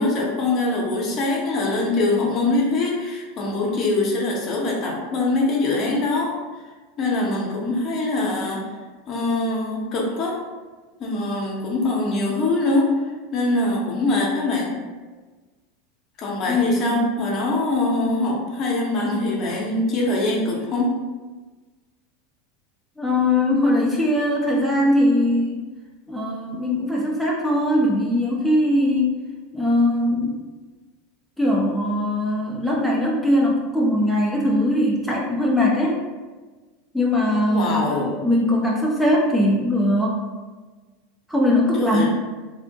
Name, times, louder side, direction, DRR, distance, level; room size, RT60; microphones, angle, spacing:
voice 1, 0.0-6.3 7.0-8.6 9.1-10.4 11.0-12.9 13.3-14.7 16.2-21.0 37.5-38.2 41.8-42.1, left 2 dB, 45° left, -2 dB, 0.7 m, -23 dB
voice 2, 16.5-17.1 23.0-25.6 26.1-29.2 29.5-30.4 31.4-36.0 36.9-40.2 41.3-42.1, left 1 dB, ahead, -4 dB, 0.5 m, -20 dB
2.7 x 2.1 x 2.7 m, 1.3 s
hypercardioid pair, 85°, 0 cm